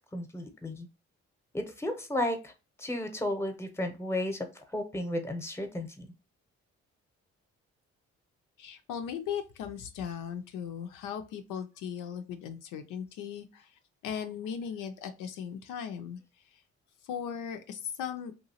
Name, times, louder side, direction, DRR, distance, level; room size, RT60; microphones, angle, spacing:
voice 1, 0.1-0.9 1.5-2.5 2.8-6.1, left 1 dB, 10° left, 6 dB, 0.8 m, -33 dB
voice 2, 8.6-13.7 14.0-16.2 17.0-18.3, left 8 dB, 75° left, 6 dB, 0.5 m, -38 dB
2.8 x 2.3 x 2.7 m, 0.29 s
hypercardioid pair, 45°, 33 cm